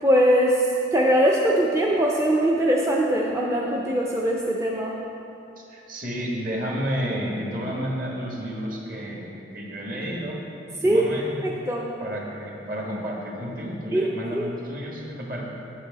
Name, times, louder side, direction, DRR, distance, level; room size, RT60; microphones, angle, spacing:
voice 1, 0.0-4.9 10.8-11.0 11.4-11.9 13.9-14.1 14.3-14.5, right 1 dB, 15° right, -2 dB, 0.4 m, -21 dB
voice 2, 5.6-10.4 10.7-11.4 12.0-15.4, equal, 50° right, -2 dB, 1.4 m, -31 dB
8.2 x 8.2 x 4.0 m, 2.8 s
head